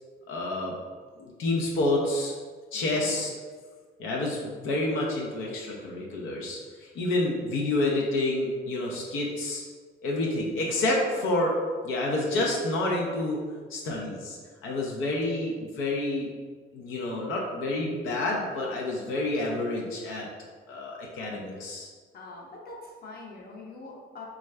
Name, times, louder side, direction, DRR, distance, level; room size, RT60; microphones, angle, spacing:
voice 1, 0.3-0.8 1.2-2.3 2.7-3.3 4.0-9.6 10.0-11.5 11.8-13.4 13.7-16.3 16.7-20.3 20.7-21.9, left 2 dB, 90° left, -2 dB, 0.6 m, -29 dB
voice 2, 2.7-3.2 10.5-11.3 22.1-24.3, left 2 dB, 50° left, -1 dB, 0.7 m, -44 dB
3.1 x 2.4 x 3.2 m, 1.5 s
cardioid pair, 90°, 20 cm